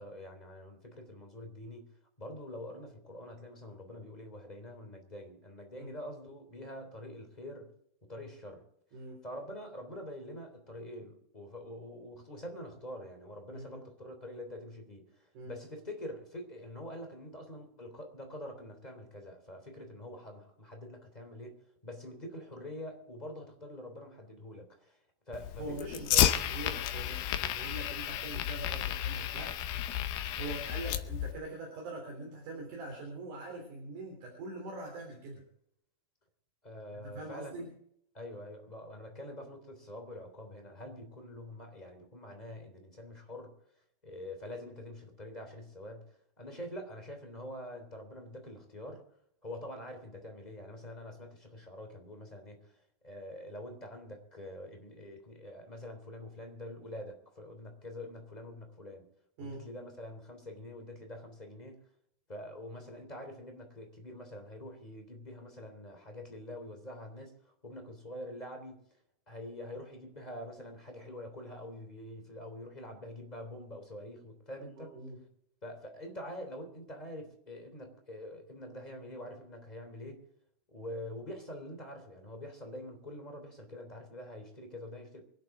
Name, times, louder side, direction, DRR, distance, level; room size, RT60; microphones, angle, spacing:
voice 1, 0.0-1.9 2.2-7.7 8.0-8.6 9.2-21.6 21.8-25.0 25.3-26.3 36.6-37.5 38.1-43.5 44.0-49.0 49.4-59.0 59.4-61.8 62.3-68.8 69.3-74.9 75.6-80.2 80.7-85.2, left 1 dB, 10° left, 3 dB, 3.0 m, -45 dB
voice 2, 8.9-9.2 13.5-13.9 15.3-15.5 25.6-29.5 30.4-35.4 36.9-37.7 59.4-59.6 74.8-75.2, right 2 dB, 60° right, 1 dB, 4.9 m, -43 dB
Fire, 25.3-31.3, left 11 dB, 90° left, 2.8 m, -32 dB
24.5 x 11.5 x 3.7 m, 0.71 s
omnidirectional pair, 4.2 m